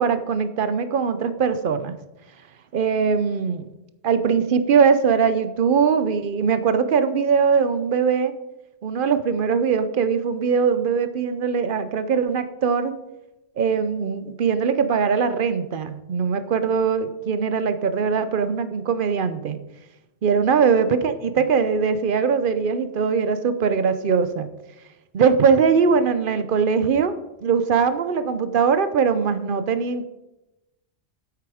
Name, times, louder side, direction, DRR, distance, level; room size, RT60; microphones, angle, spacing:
voice 1, 0.0-2.0 2.7-3.7 4.0-8.3 8.8-13.0 13.6-19.6 20.2-24.5 25.1-27.1 27.4-30.0, right 6 dB, 55° right, 12 dB, 0.7 m, -21 dB
8.5 x 7.9 x 4.9 m, 0.98 s
omnidirectional pair, 1.2 m